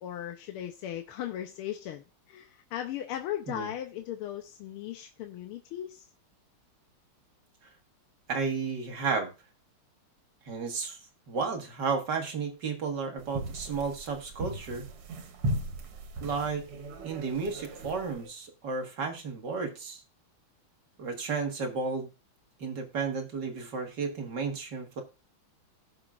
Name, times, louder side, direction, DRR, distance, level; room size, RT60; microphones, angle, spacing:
voice 1, 0.0-6.1, left 11 dB, 90° left, 1.7 m, -37 dB
voice 2, 8.3-9.3 10.4-14.8 16.2-16.7 17.0-20.0 21.0-22.1 22.6-25.0, right 5 dB, 55° right, 2.1 m, -33 dB
sound 1, 13.2-18.3, right 1 dB, 90° right, 2.2 m, -37 dB
17.5 x 6.3 x 2.4 m
omnidirectional pair, 2.4 m